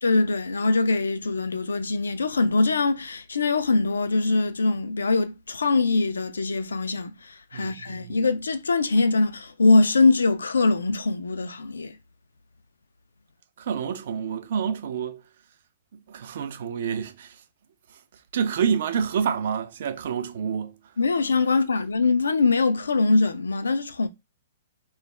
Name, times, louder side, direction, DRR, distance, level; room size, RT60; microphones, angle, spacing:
voice 1, 0.0-12.0 21.0-24.1, left 3 dB, 90° left, 0.3 m, -22 dB
voice 2, 7.5-8.3 13.6-15.2 16.1-17.4 18.3-20.8, right 7 dB, 60° right, 0.4 m, -28 dB
2.2 x 2.0 x 3.1 m
hypercardioid pair, 130°, 0 cm